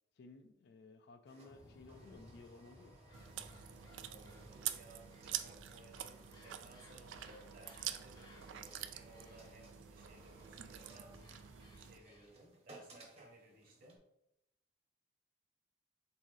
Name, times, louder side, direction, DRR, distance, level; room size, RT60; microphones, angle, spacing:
voice 1, 0.2-2.9, left 3 dB, 60° left, 8 dB, 0.4 m, -57 dB
sound 1, 1.3-14.0, right 2 dB, 35° right, 0.8 m, -62 dB
sound 2, 1.5-12.5, left 1 dB, 25° left, 0.7 m, -61 dB
Chewing mastication, 3.1-12.0, right 11 dB, 85° right, 0.3 m, -47 dB
voice 2, 4.1-11.2 11.8-14.0, right 1 dB, 50° right, 1 dB, 1.1 m, -60 dB
4.1 x 3.5 x 3.2 m, 0.85 s
head